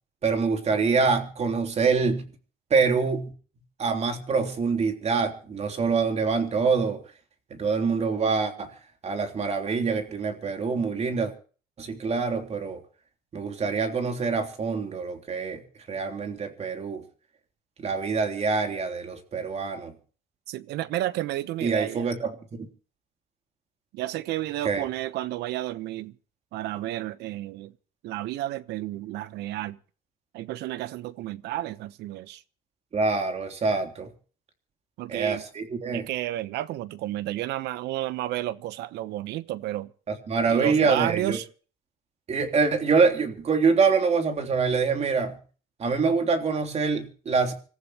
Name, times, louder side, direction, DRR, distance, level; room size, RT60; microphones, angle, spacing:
voice 1, 0.2-2.2 2.7-3.3 3.8-7.0 7.5-8.7 9.0-11.3 11.8-12.8 13.3-17.0 17.8-19.9 21.6-22.7 24.6-24.9 32.9-34.1 35.1-36.1 40.1-41.4 42.3-45.4 45.8-47.5, right 4 dB, 40° right, 3.3 m, -25 dB
voice 2, 20.5-22.1 23.9-26.1 26.5-27.7 28.0-29.8 30.3-32.4 35.0-35.4 35.9-39.9 40.5-41.4, right 14 dB, 85° right, 1.0 m, -31 dB
26.0 x 14.5 x 3.0 m
cardioid pair, 110°, 17 cm